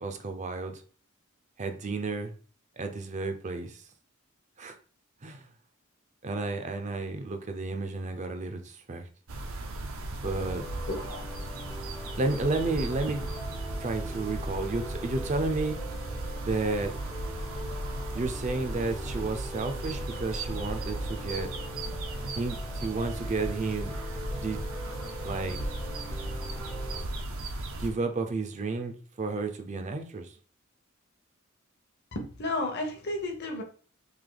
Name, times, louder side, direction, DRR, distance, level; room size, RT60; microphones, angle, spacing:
voice 1, 0.0-0.8 1.6-2.3 2.8-3.8 4.6-4.8 5.2-5.5 6.2-9.1 10.2-10.6 12.2-13.5 13.8-15.8 16.4-16.9 18.1-21.5 22.4-24.0 24.3-24.6 25.2-25.6 27.8-30.3, right 3 dB, 35° right, 0.5 m, -32 dB
sound 1, 9.3-27.9, right 1 dB, 80° right, 0.7 m, -36 dB
sound 2, 10.2-27.1, left 1 dB, 15° left, 0.4 m, -44 dB
voice 2, 10.9-11.2 32.1-33.6, left 2 dB, 50° left, 0.8 m, -32 dB
3.4 x 2.7 x 3.8 m
head